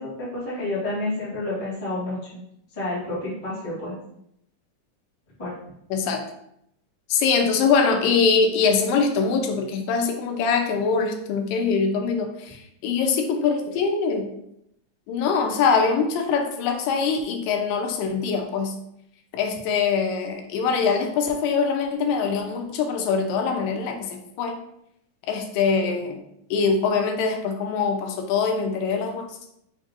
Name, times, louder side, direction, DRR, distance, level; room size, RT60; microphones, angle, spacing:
voice 1, 0.0-2.2 2.7-4.0 5.4-5.5, left 2 dB, 30° left, -8 dB, 0.6 m, -29 dB
voice 2, 5.9-6.2 7.1-14.3 15.1-18.7 19.3-24.6 25.3-26.2 26.5-29.3, left 5 dB, 85° left, 4 dB, 2.2 m, -23 dB
5.3 x 3.9 x 2.5 m, 0.76 s
omnidirectional pair, 3.9 m